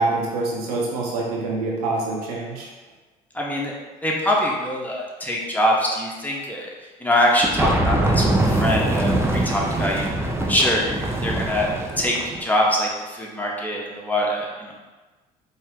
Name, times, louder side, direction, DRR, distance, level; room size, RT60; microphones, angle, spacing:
voice 1, 0.0-2.7, right 3 dB, 90° right, -3 dB, 0.9 m, -25 dB
voice 2, 3.3-3.7 4.0-6.7 7.0-10.1 10.5-14.7, equal, 10° left, -3 dB, 1.0 m, -23 dB
sound 1, 7.4-12.4, right 1 dB, 15° right, 0.6 m, -23 dB
4.5 x 2.1 x 3.7 m, 1.2 s
hypercardioid pair, 65°, 19 cm